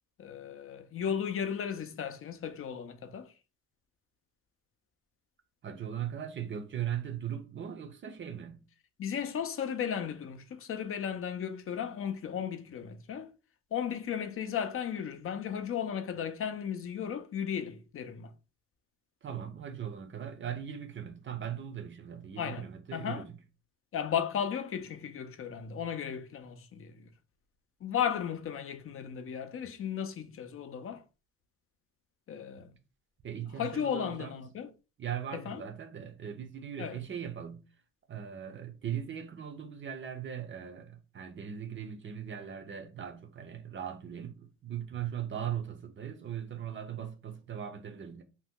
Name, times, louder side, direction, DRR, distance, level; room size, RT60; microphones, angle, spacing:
voice 1, 0.2-3.3 9.0-13.3 13.7-18.3 22.4-22.6 22.9-23.3 23.9-27.1 27.8-31.0 32.3-32.7 33.6-34.7 35.3-35.6 36.8-37.0, left 8 dB, 45° left, 0.5 m, -35 dB
voice 2, 5.6-8.6 19.2-23.4 33.2-34.4 35.0-37.6 38.1-48.2, right 9 dB, 40° right, 0.6 m, -39 dB
2.8 x 2.1 x 3.6 m
cardioid pair, 90°, 30 cm